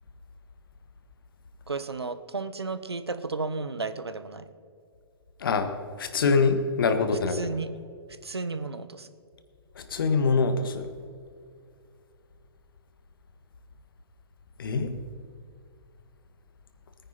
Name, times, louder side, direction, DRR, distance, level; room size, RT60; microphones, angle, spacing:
voice 1, 1.7-4.5 7.3-7.7 8.2-9.1, right 4 dB, 80° right, 12 dB, 1.0 m, -33 dB
voice 2, 5.4-5.7 6.0-7.4 9.8-10.9 14.6-14.9, left 4 dB, 60° left, 9 dB, 1.5 m, -24 dB
20.0 x 9.5 x 4.3 m, 2.3 s
figure-of-eight pair, 120°, 13 cm